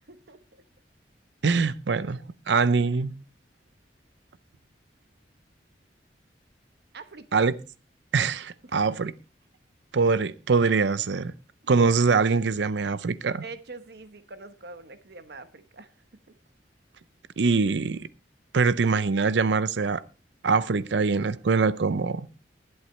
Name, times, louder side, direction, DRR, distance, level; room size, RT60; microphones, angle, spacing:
voice 1, 0.1-0.6 6.9-7.5 8.6-8.9 13.4-15.9 16.3-16.4, right 3 dB, 65° right, 1.1 m, -44 dB
voice 2, 1.4-2.2 2.5-3.1 7.3-7.5 8.1-9.1 9.9-11.3 11.7-13.4 17.4-18.1 18.5-20.0 20.4-22.3, right 4 dB, 80° right, 0.5 m, -23 dB
20.0 x 8.0 x 3.2 m
head